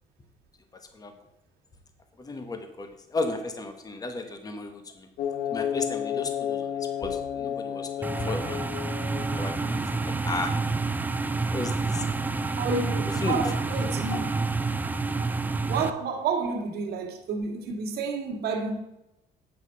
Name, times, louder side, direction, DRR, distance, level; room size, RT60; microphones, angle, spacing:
voice 1, 2.2-5.1 5.5-8.7 9.4-10.6 11.5-12.1 13.1-13.5 14.1-14.2, left 2 dB, 20° left, 1.0 m, -34 dB
sound 1, 5.2-9.9, left 9 dB, 80° left, 0.9 m, -32 dB
sound 2, 8.0-15.9, right 3 dB, 10° right, 0.4 m, -28 dB
voice 2, 12.6-14.2 15.2-15.3 15.7-18.8, right 4 dB, 70° right, 1.7 m, -30 dB
8.4 x 5.7 x 5.5 m
cardioid pair, 110°, 17 cm